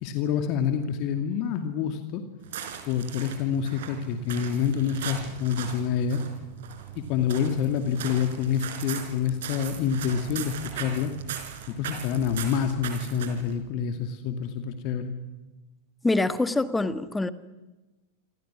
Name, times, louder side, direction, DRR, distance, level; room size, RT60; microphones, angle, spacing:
voice 1, 0.0-2.2 2.9-6.2 6.9-11.1 11.7-15.1, left 7 dB, 40° left, 2.3 m, -27 dB
sound 1, 2.4-13.6, right 9 dB, 55° right, 4.6 m, -39 dB
voice 2, 16.0-17.3, left 2 dB, 10° left, 1.6 m, -25 dB
27.5 x 27.0 x 6.2 m
figure-of-eight pair, 90°, 0 cm